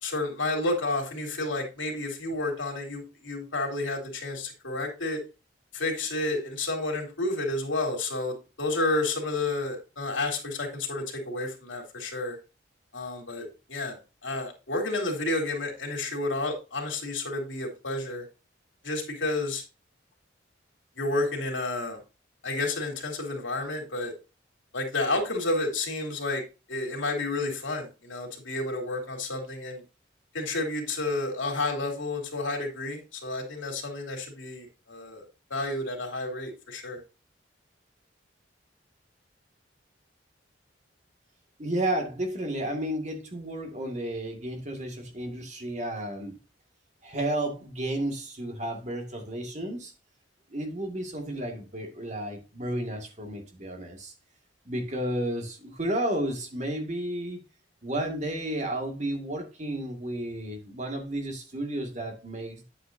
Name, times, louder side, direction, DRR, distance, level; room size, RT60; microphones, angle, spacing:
voice 1, 0.0-5.2 5.7-12.4 12.9-14.0 14.2-18.2 18.8-19.6 21.0-22.0 22.4-24.1 24.7-26.4 26.7-29.8 30.3-37.0, left 2 dB, 90° left, 1 dB, 3.1 m, -31 dB
voice 2, 41.6-46.4 47.0-49.9 50.5-54.1 54.7-57.4 57.8-62.6, right 1 dB, 40° right, 3 dB, 2.0 m, -32 dB
9.8 x 8.6 x 2.7 m, 0.29 s
head